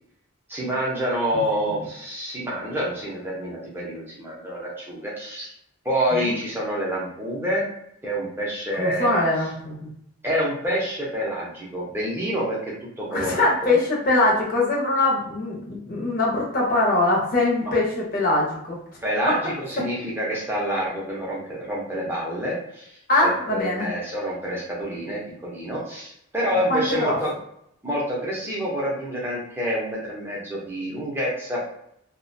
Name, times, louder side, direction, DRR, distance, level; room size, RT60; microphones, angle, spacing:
voice 1, 0.5-5.5 5.8-7.6 8.0-9.2 10.2-13.7 17.6-17.7 19.0-27.3 27.8-31.7, equal, 10° right, -5 dB, 0.6 m, -27 dB
voice 2, 8.8-9.8 13.1-18.8 23.1-23.9 26.7-27.2, left 2 dB, 40° left, -4 dB, 0.6 m, -22 dB
2.3 x 2.1 x 2.6 m, 0.76 s
head